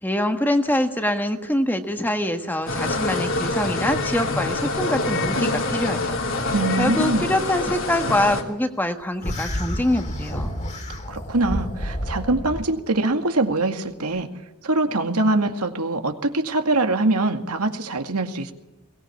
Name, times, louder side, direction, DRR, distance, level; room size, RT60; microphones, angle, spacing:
voice 1, 0.0-10.5, left 1 dB, 10° left, 6 dB, 1.4 m, -25 dB
sound 1, 2.7-8.4, left 2 dB, 60° left, 3.2 m, -25 dB
voice 2, 6.5-7.3 11.1-14.3 14.6-18.5, right 2 dB, 90° right, 5 dB, 2.2 m, -23 dB
sound 2, 9.2-12.6, equal, 30° left, 2.8 m, -29 dB
22.5 x 18.5 x 8.6 m, 1.0 s
head